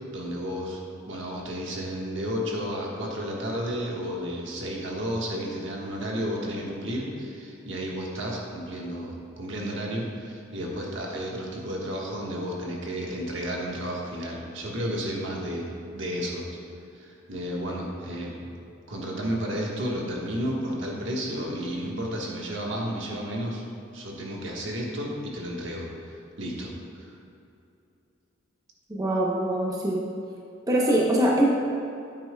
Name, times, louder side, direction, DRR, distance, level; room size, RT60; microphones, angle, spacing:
voice 1, 0.1-16.6 16.9-18.5 18.9-23.6 23.9-27.2, equal, 65° right, -2 dB, 1.4 m, -32 dB
voice 2, 28.9-30.0 30.7-31.5, right 1 dB, 20° right, -3 dB, 0.7 m, -23 dB
9.7 x 8.8 x 2.2 m, 2.7 s
head